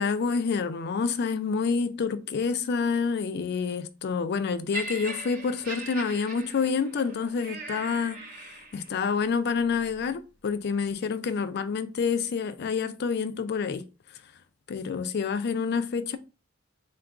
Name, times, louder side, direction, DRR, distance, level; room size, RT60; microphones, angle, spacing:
voice 1, 0.0-8.2 8.7-13.8 14.7-16.2, left 5 dB, 55° left, 0.4 m, -28 dB
Laughter, 4.7-9.0 9.8-10.0, right 2 dB, 45° right, 0.7 m, -39 dB
3.8 x 2.5 x 3.3 m
head